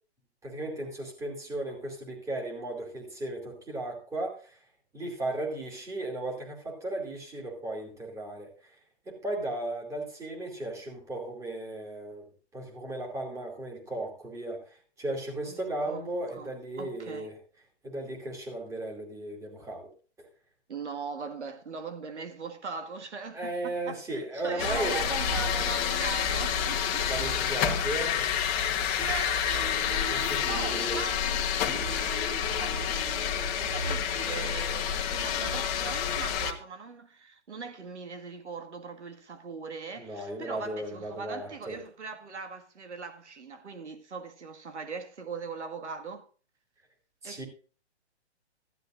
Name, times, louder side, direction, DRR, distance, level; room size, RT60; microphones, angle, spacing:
voice 1, 0.4-4.6 4.9-8.8 9.1-17.4 17.8-19.9 20.2-20.3 23.3-25.0 27.0-28.2 30.1-31.0 40.0-41.8 47.2-47.5, right 2 dB, 10° right, 2.6 m, -36 dB
voice 2, 15.5-16.5 16.8-17.3 20.7-27.3 29.0-31.2 31.7-46.3 47.2-47.4, right 4 dB, 85° right, 1.9 m, -40 dB
sound 1, 24.6-36.5, left 8 dB, 20° left, 1.2 m, -29 dB
15.5 x 12.0 x 2.5 m
hypercardioid pair, 150°, 34 cm